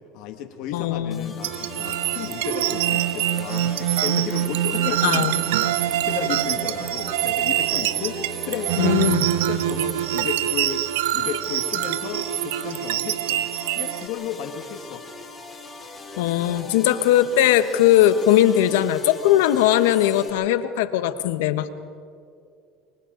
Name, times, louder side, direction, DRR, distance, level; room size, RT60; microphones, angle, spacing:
voice 1, 0.1-9.0 9.5-10.8 11.1-13.4 13.7-15.0, left 8 dB, 65° left, 6 dB, 1.6 m, -33 dB
voice 2, 0.7-1.3 4.8-5.4 8.8-9.2 16.2-21.7, left 12 dB, 85° left, 11 dB, 1.1 m, -19 dB
sound 1, 1.1-20.3, left 3 dB, 25° left, 5.9 m, -40 dB
sound 2, 1.4-14.1, right 13 dB, 90° right, 0.7 m, -24 dB
29.5 x 24.0 x 3.9 m, 2.3 s
supercardioid pair, 110°, 0 cm